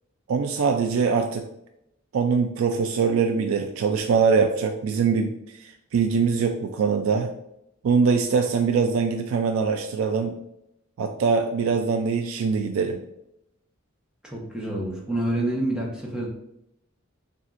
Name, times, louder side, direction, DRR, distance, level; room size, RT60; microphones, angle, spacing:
voice 1, 0.3-1.5 2.1-7.3 7.8-10.3 11.0-13.0, right 5 dB, 75° right, 5 dB, 0.3 m, -23 dB
voice 2, 14.2-16.3, right 1 dB, 5° right, -3 dB, 0.9 m, -27 dB
7.1 x 2.4 x 2.5 m, 0.80 s
head